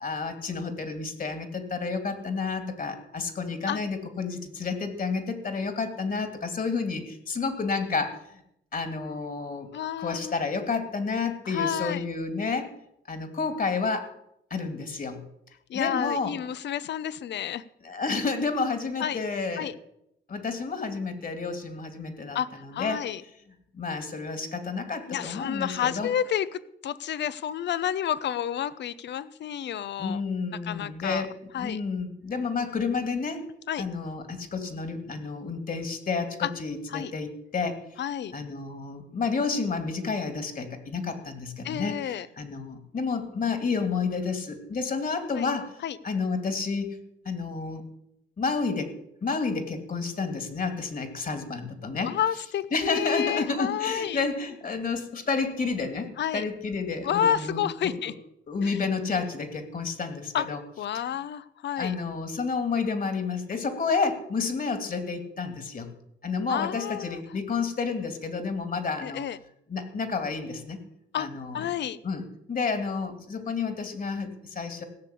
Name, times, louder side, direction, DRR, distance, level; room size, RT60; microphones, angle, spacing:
voice 1, 0.0-8.4 8.7-9.7 10.0-12.7 13.1-14.1 14.5-15.2 15.7-16.4 17.8-19.7 20.3-22.4 22.6-23.1 23.7-26.1 30.0-33.5 33.8-37.8 38.3-45.8 46.0-47.0 47.2-47.8 48.4-48.9 49.2-52.1 52.7-57.9 58.5-60.6 60.9-61.1 61.8-65.9 66.2-69.2 69.7-70.8 71.2-71.6 72.0-74.8, left 4 dB, 45° left, 8 dB, 2.6 m, -30 dB
voice 2, 9.7-10.4 11.5-12.0 15.7-17.6 19.0-19.2 19.6-19.7 22.3-23.2 25.1-30.2 30.7-31.2 31.5-31.8 33.7-33.8 36.4-36.5 36.9-37.1 38.0-38.3 41.6-42.3 45.3-45.5 45.8-46.0 52.0-54.2 56.2-56.4 57.0-58.1 58.6-58.8 60.3-60.5 60.8-61.9 66.5-67.2 69.0-69.4 71.1-71.3 71.5-72.0, left 9 dB, 60° left, 17 dB, 0.8 m, -30 dB
16.5 x 6.8 x 8.4 m, 0.78 s
cardioid pair, 90°, 20 cm